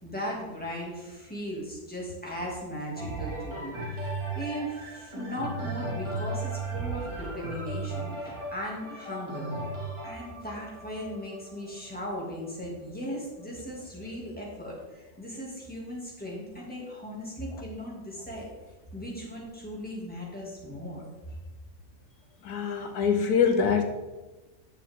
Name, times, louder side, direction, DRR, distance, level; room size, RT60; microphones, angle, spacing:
voice 1, 0.0-4.1 4.3-9.5 10.0-18.5 18.9-21.0, equal, 5° left, -4 dB, 2.3 m, -37 dB
sound 1, 3.0-12.7 13.4-13.5, right 2 dB, 15° right, 2.4 m, -36 dB
voice 2, 22.4-23.8, left 6 dB, 80° left, 6 dB, 1.3 m, -24 dB
10.0 x 6.8 x 3.7 m, 1.1 s
omnidirectional pair, 1.6 m